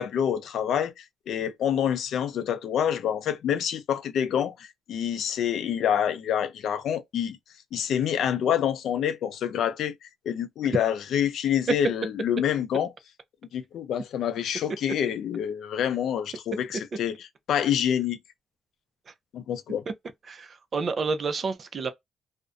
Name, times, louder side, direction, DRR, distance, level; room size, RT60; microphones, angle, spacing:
voice 1, 0.0-7.4 7.7-9.9 10.3-12.9 13.5-17.2 17.5-18.2 19.3-19.8, left 9 dB, 70° left, 0.5 m, -27 dB
voice 2, 20.3-21.9, right 4 dB, 45° right, 0.5 m, -30 dB
2.5 x 2.1 x 2.4 m
cardioid pair, 90°, 0 cm